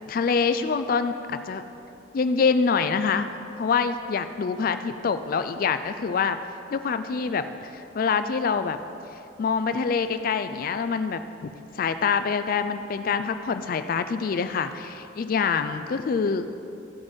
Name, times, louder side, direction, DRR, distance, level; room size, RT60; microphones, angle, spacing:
voice 1, 0.1-1.6 2.1-3.3 3.6-6.4 6.7-8.8 9.4-16.5, left 5 dB, 50° left, 10 dB, 0.3 m, -25 dB
15.0 x 5.2 x 5.3 m, 2.8 s
head